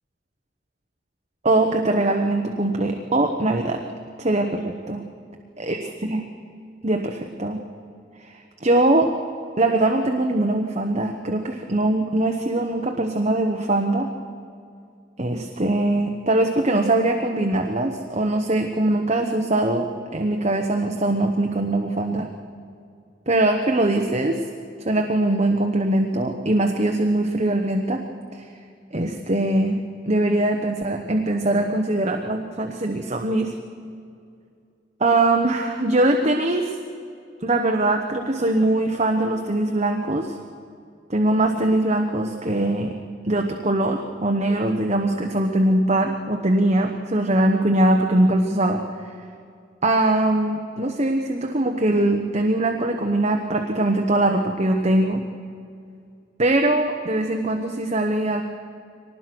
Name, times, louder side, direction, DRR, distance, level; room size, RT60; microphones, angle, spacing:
voice 1, 1.4-3.8 4.2-5.0 5.7-6.2 6.8-7.6 8.2-9.1 9.6-14.1 15.2-22.3 23.3-24.4 24.8-28.0 28.3-28.5 28.9-29.8 30.1-33.5 35.0-36.8 37.4-40.4 41.1-42.9 43.2-49.1 49.8-55.2 56.4-58.4, right 1 dB, 40° right, 3 dB, 1.2 m, -22 dB
24.0 x 19.5 x 6.2 m, 2.4 s
head